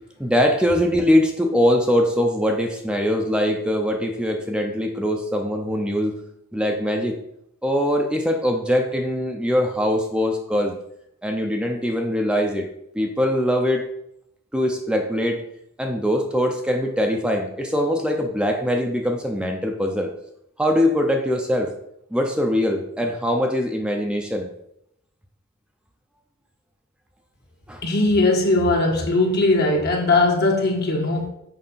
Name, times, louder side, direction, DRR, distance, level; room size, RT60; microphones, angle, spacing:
voice 1, 0.2-6.1 6.5-7.2 7.6-10.7 11.2-12.7 12.9-13.9 14.5-15.4 15.8-20.1 20.6-21.7 22.1-24.5 27.7-27.8, equal, 5° right, 0.7 m, -22 dB
voice 2, 27.8-31.3, left 2 dB, 55° left, 1.7 m, -19 dB
6.7 x 5.0 x 5.6 m
head